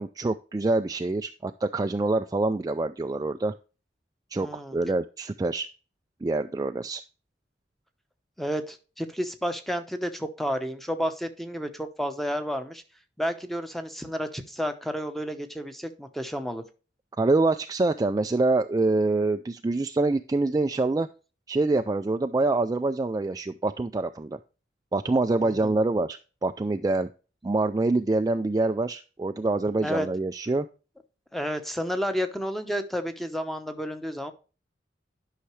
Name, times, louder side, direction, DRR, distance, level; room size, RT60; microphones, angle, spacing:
voice 1, 0.0-3.5 4.3-5.7 6.2-7.0 17.2-21.1 21.5-24.4 24.9-27.1 27.4-30.7, right 2 dB, 20° right, 7 dB, 0.3 m, -25 dB
voice 2, 4.4-4.8 8.4-12.8 13.2-16.6 25.4-25.7 29.8-30.1 31.3-34.3, equal, ahead, 8 dB, 0.9 m, -31 dB
11.5 x 5.8 x 3.2 m, 0.34 s
head